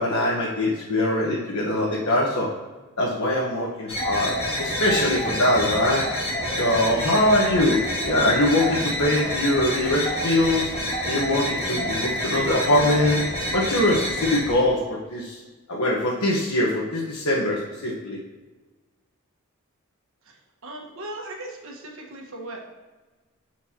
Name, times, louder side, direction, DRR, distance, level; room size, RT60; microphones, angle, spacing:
voice 1, 0.0-2.5 3.0-6.0 6.6-10.7 11.0-13.2 13.5-15.4 15.7-18.2, left 1 dB, 75° left, -5 dB, 1.3 m, -22 dB
sound 1, 3.9-14.5, left 1 dB, 30° left, 1.7 m, -28 dB
voice 2, 20.6-22.7, right 1 dB, 65° right, 0 dB, 1.4 m, -37 dB
12.0 x 4.5 x 2.9 m, 1.2 s
head